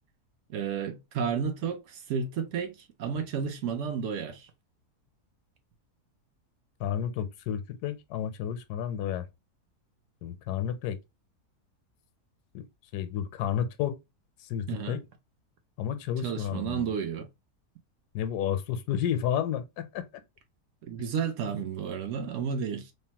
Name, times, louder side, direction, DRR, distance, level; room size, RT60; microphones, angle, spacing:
voice 1, 0.5-4.5 14.7-15.0 16.2-17.3 20.8-22.9, right 7 dB, 65° right, 0.8 m, -32 dB
voice 2, 6.8-9.3 10.2-11.0 12.5-12.7 12.9-14.0 14.5-15.0 15.8-16.9 18.1-20.1, left 9 dB, 80° left, 1.1 m, -31 dB
3.2 x 2.1 x 2.8 m
omnidirectional pair, 1.7 m